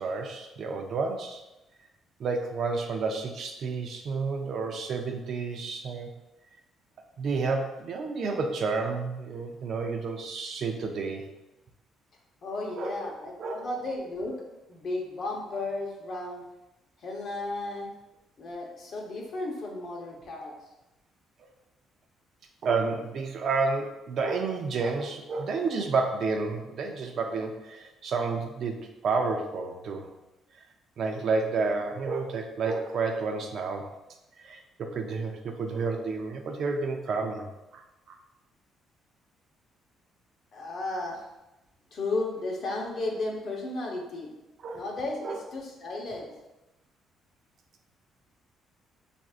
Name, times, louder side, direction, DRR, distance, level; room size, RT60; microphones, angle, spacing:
voice 1, 0.0-1.4 2.2-6.1 7.2-11.2 12.8-13.0 13.4-13.7 22.6-30.1 31.0-33.9 34.4-37.8 38.1-38.2 44.6-44.8 45.2-45.4, right 4 dB, 50° right, 3 dB, 0.5 m, -30 dB
voice 2, 12.4-14.4 14.7-16.4 17.0-17.9 18.4-20.5 40.5-41.3 41.9-44.3 44.7-46.3, left 2 dB, 45° left, -1 dB, 0.9 m, -34 dB
5.8 x 2.6 x 2.4 m, 0.97 s
cardioid pair, 155°, 0 cm